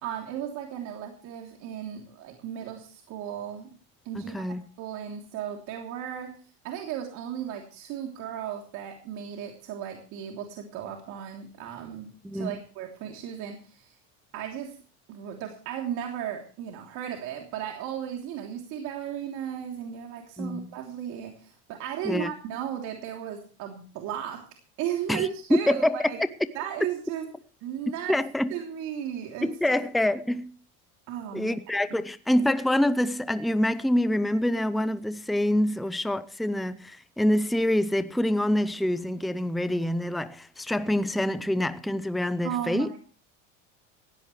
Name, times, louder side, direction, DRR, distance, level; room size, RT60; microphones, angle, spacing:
voice 1, 0.0-3.7 4.0-4.5 4.8-6.3 6.6-13.9 14.3-14.8 15.1-24.5 24.8-26.2 26.5-27.3 27.6-28.1 28.5-29.8 31.1-31.6 42.4-43.0, right 9 dB, 60° right, 3.2 m, -35 dB
voice 2, 4.2-4.6 12.2-12.6 20.4-20.7 22.0-22.3 25.1-26.0 28.1-28.5 29.4-30.5 31.3-42.9, left 1 dB, ahead, 0.6 m, -26 dB
18.5 x 16.0 x 3.2 m
supercardioid pair, 135°, 33 cm